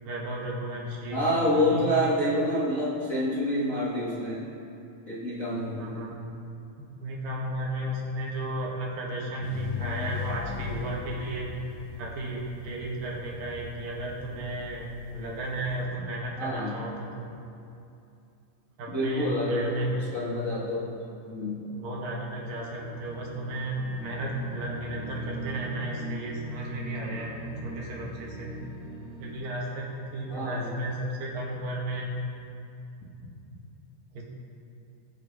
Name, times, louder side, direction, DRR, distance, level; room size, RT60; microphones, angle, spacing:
voice 1, 0.1-1.9 5.7-6.1 6.8-11.5 12.0-17.3 18.8-19.9 21.7-27.4 27.6-28.5 29.2-32.1 34.1-34.2, right 1 dB, 75° right, -3 dB, 3.5 m, -34 dB
voice 2, 1.1-4.4 5.1-6.1 16.4-16.8 18.9-21.0 21.3-21.6 30.3-30.8, equal, 65° left, -6 dB, 0.8 m, -28 dB
sound 1, 9.4-15.9, left 10 dB, 90° left, 1.6 m, -39 dB
sound 2, 22.3-29.3, right 2 dB, 50° right, 0.8 m, -41 dB
22.0 x 7.8 x 3.5 m, 2.6 s
omnidirectional pair, 4.1 m